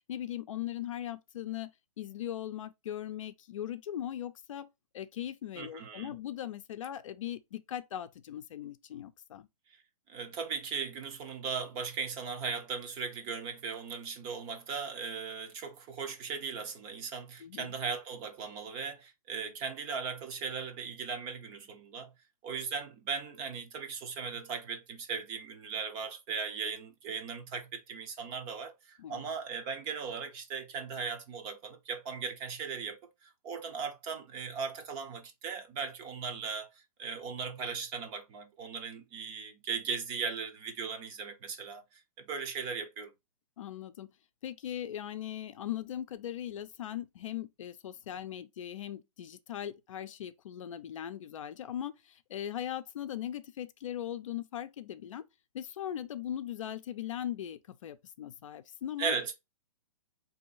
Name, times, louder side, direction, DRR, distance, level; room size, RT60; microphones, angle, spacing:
voice 1, 0.1-1.7 2.0-4.7 4.9-9.5 17.4-17.7 29.0-29.2 43.6-44.1 44.4-55.2 55.5-59.1, left 11 dB, 60° left, 0.6 m, -39 dB
voice 2, 5.6-6.1 10.1-22.1 22.4-36.7 37.0-43.1 59.0-59.4, right 5 dB, 25° right, 0.6 m, -38 dB
3.8 x 2.8 x 3.9 m
hypercardioid pair, 155°, 19 cm